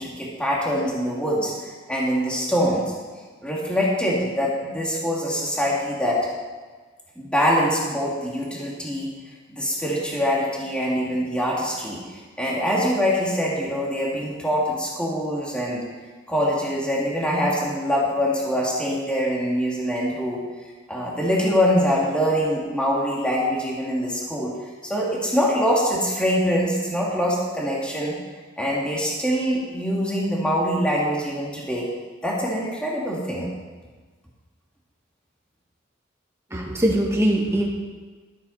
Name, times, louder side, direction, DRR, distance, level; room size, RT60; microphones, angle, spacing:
voice 1, 0.0-2.9 3.4-6.2 7.2-9.1 9.5-15.8 16.3-20.4 20.9-24.5 24.8-28.2 28.6-31.9 32.2-33.5, equal, 5° left, -5 dB, 2.7 m, -24 dB
voice 2, 36.5-37.7, right 1 dB, 15° right, -3 dB, 2.3 m, -21 dB
13.0 x 12.5 x 4.3 m, 1.4 s
head